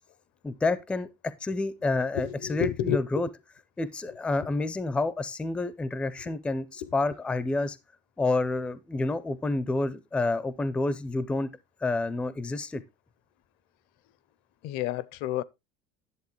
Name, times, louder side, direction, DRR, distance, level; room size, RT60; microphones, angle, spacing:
voice 1, 0.4-3.3 3.8-7.8 8.2-11.5 11.8-12.8, left 2 dB, 5° left, 0.4 m, -29 dB
voice 2, 2.1-3.0 4.4-4.5 6.2-6.3 6.8-6.9 14.6-15.4, left 11 dB, 55° left, 0.5 m, -30 dB
10.5 x 7.4 x 3.1 m
cardioid pair, 175°, 20 cm